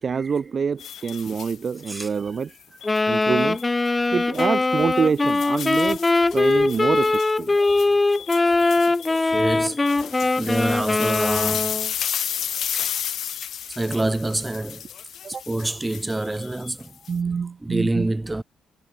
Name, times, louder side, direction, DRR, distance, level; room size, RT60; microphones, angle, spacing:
voice 1, 0.0-2.5 3.1-3.6 4.1-7.6 15.2-15.4 17.1-18.1, right 6 dB, 45° right, 1.4 m, -26 dB
sound 1, 0.8-2.1 2.8-3.7 4.2-4.5 4.9-17.1, left 9 dB, 65° left, 4.7 m, -33 dB
Wind instrument woodwind instrument, 2.8-11.9, left 3 dB, 20° left, 1.7 m, -21 dB
voice 2, 9.1-11.8 13.7-14.8 15.5-17.0 17.6-18.4, right 2 dB, 15° right, 7.0 m, -27 dB
cardioid pair, 90°, 0 cm